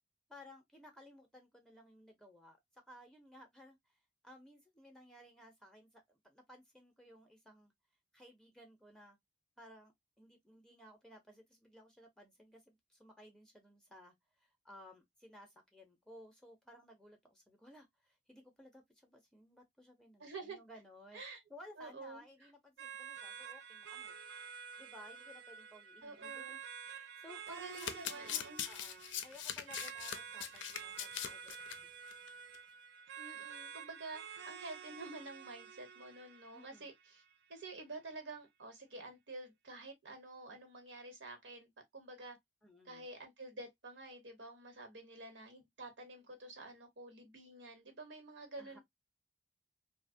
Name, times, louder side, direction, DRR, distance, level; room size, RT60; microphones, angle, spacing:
voice 1, 0.3-4.0 4.2-7.7 8.1-9.2 9.6-21.2 21.5-24.2 24.8-26.6 26.8-31.9 36.5-36.9 42.6-43.1 48.6-48.8, equal, 5° left, 0.5 m, -58 dB
voice 2, 20.2-20.6 21.1-21.4 21.8-22.2 26.0-26.6 27.5-28.7 33.2-37.2 37.5-42.4 42.8-48.8, right 2 dB, 90° right, 1.0 m, -49 dB
sound 1, 22.8-37.7, right 7 dB, 60° right, 0.4 m, -50 dB
Domestic sounds home sounds, 27.6-31.8 32.1-32.3 32.5-32.6, left 9 dB, 90° left, 0.4 m, -42 dB
2.7 x 2.1 x 2.5 m
head